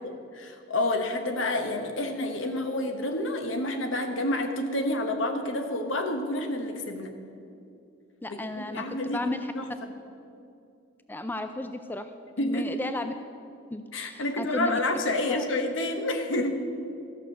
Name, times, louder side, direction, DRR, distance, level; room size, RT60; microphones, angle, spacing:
voice 1, 0.0-7.1 8.3-9.3 9.5-9.7 12.4-12.7 13.9-16.6, left 1 dB, 80° left, 6 dB, 1.1 m, -29 dB
voice 2, 8.2-8.8 9.1-9.5 11.1-12.1 12.4-13.1 13.7-14.8 15.3-15.4, left 1 dB, 10° left, 8 dB, 0.3 m, -33 dB
13.5 x 6.4 x 6.6 m, 2.6 s
head